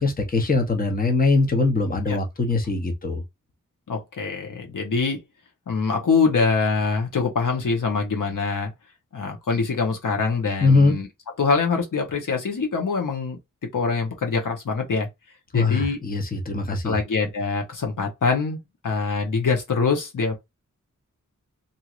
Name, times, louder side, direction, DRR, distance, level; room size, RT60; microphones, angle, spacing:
voice 1, 0.0-3.2 10.6-10.9 15.5-17.0, left 3 dB, 30° left, 0.8 m, -21 dB
voice 2, 3.9-5.2 5.7-8.7 9.1-11.1 11.4-13.4 13.7-15.1 15.5-16.0 16.8-18.6 18.8-20.3, left 4 dB, 80° left, 1.0 m, -24 dB
3.0 x 2.7 x 2.4 m
wide cardioid pair, 85°, 31 cm